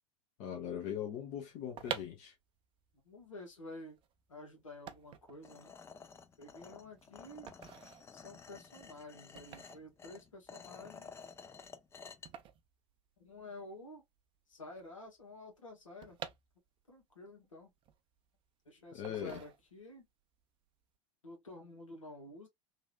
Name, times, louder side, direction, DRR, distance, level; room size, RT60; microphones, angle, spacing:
voice 1, 0.4-2.3 18.9-19.4, left 9 dB, 50° left, 1.0 m, -40 dB
sound 1, 1.5-13.6 13.9-14.0 14.2-17.0 17.4-18.5 19.0-20.0 20.4-20.7, right 9 dB, 30° right, 0.5 m, -49 dB
voice 2, 3.0-4.0 4.3-5.8 6.4-7.5 8.1-11.1 13.2-14.0 14.5-16.2 16.9-17.7 18.6-20.0 21.2-22.5, left 2 dB, 80° left, 1.5 m, -51 dB
sound 2, 5.4-12.3, left 5 dB, 15° left, 0.5 m, -53 dB
3.3 x 2.6 x 2.4 m
figure-of-eight pair, 80°, 17 cm